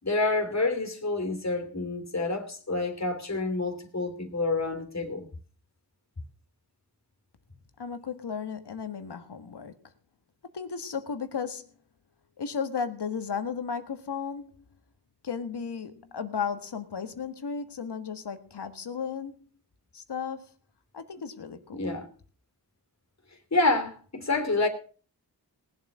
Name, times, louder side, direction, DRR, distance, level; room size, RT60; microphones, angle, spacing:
voice 1, 0.0-5.3 21.7-22.1 23.5-24.7, left 2 dB, 40° left, 3.1 m, -28 dB
voice 2, 7.8-9.7 10.5-11.7 12.4-14.5 15.2-19.3 19.9-20.5 20.9-21.9, left 6 dB, 75° left, 1.7 m, -34 dB
19.0 x 7.9 x 6.2 m
cardioid pair, 50°, 41 cm